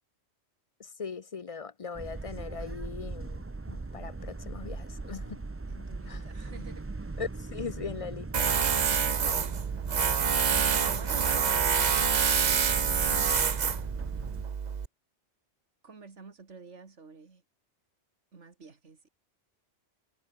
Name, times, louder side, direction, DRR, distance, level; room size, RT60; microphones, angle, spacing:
voice 1, 0.8-5.5 6.1-6.2 7.2-8.5, left 5 dB, 45° left, 0.5 m, -40 dB
sound 1, 1.9-14.4, right 3 dB, 20° right, 0.3 m, -40 dB
voice 2, 5.7-6.9 10.5-13.4 15.8-17.4 18.3-19.1, right 4 dB, 80° right, 2.5 m, -50 dB
Tools, 8.3-14.9, right 6 dB, 40° right, 0.8 m, -27 dB
omnidirectional pair, 1.2 m